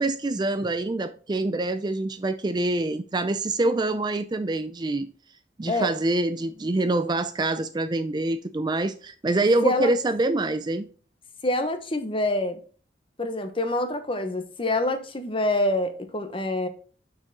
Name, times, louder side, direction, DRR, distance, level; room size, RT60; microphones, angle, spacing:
voice 1, 0.0-5.1 5.6-10.9, right 2 dB, 25° right, 0.4 m, -25 dB
voice 2, 9.6-9.9 11.4-12.6 13.2-16.7, left 2 dB, 30° left, 1.0 m, -26 dB
6.8 x 6.0 x 3.7 m
head